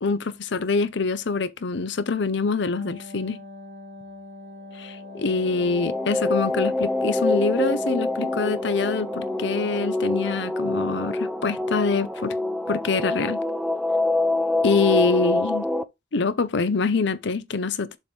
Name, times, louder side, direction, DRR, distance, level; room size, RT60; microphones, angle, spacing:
voice 1, 0.0-3.4 4.8-12.4 12.7-13.4 14.6-15.7 16.1-18.0, left 4 dB, 65° left, 0.7 m, -25 dB
Wind instrument woodwind instrument, 2.6-10.6, left 2 dB, 35° right, 1.7 m, -42 dB
sound 1, 5.2-15.8, left 2 dB, ahead, 0.4 m, -26 dB
7.2 x 3.2 x 5.3 m
head